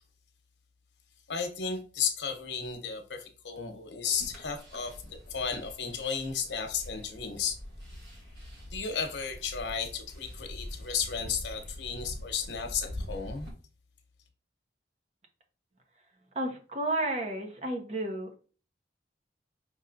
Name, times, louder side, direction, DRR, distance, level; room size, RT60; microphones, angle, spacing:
voice 1, 1.3-7.6 8.7-13.5, left 6 dB, 90° left, 0.9 m, -34 dB
sound 1, 4.1-13.5, left 1 dB, 70° right, 1.7 m, -44 dB
voice 2, 16.3-18.3, right 1 dB, 35° right, 0.8 m, -32 dB
5.3 x 3.1 x 2.6 m
head